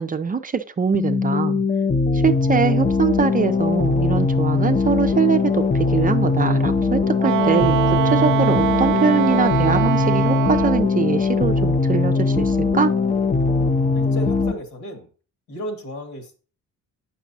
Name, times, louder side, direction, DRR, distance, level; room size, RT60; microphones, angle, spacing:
voice 1, 0.0-1.6 2.1-13.0, right 6 dB, 30° right, 8 dB, 0.5 m, -23 dB
sound 1, 0.9-14.5, left 4 dB, 25° left, 0.6 m, -20 dB
Wind instrument woodwind instrument, 7.2-10.9, right 16 dB, 85° right, 0.5 m, -23 dB
voice 2, 13.9-15.1 15.5-16.3, equal, 70° left, 4 dB, 2.3 m, -34 dB
8.1 x 6.0 x 2.7 m, 0.37 s
cardioid pair, 90°, 30 cm